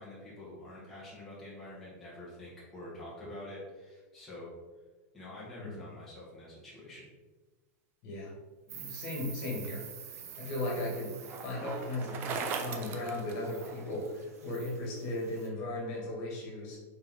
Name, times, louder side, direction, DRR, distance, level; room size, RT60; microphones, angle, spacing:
voice 1, 0.0-4.5 5.1-7.0, left 1 dB, ahead, -10 dB, 1.6 m, -46 dB
voice 2, 8.0-8.3 8.7-9.9 10.4-11.2 11.4-16.8, left 1 dB, 40° left, -3 dB, 2.1 m, -36 dB
Insect, 8.7-15.5, right 8 dB, 80° right, 0.9 m, -49 dB
Bicycle, 9.7-14.1, right 5 dB, 25° right, 0.6 m, -40 dB
6.6 x 4.3 x 3.7 m, 1.3 s
supercardioid pair, 170°, 8 cm